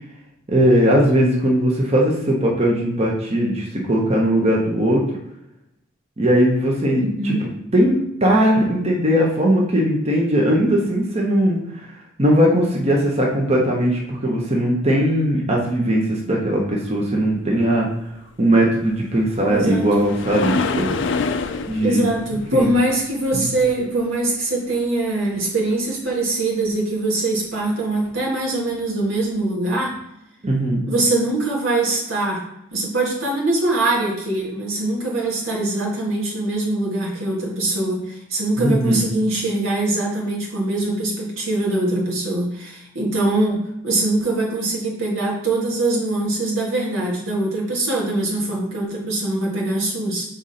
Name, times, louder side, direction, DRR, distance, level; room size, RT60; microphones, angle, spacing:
voice 1, 0.5-5.0 6.2-11.6 12.2-17.9 18.4-21.0 21.7-22.0 22.5-22.7 23.3-23.5 30.4-30.8 38.6-39.0, equal, 30° right, -2 dB, 1.1 m, -19 dB
voice 2, 6.9-7.5 19.5-19.9 21.8-29.9 30.9-32.4 32.7-50.2, right 2 dB, 85° right, -3 dB, 1.9 m, -22 dB
sound 1, 18.9-24.2 28.1-28.2 28.8-28.9, left 4 dB, 60° left, 0.4 m, -27 dB
7.0 x 3.9 x 4.2 m, 0.84 s
head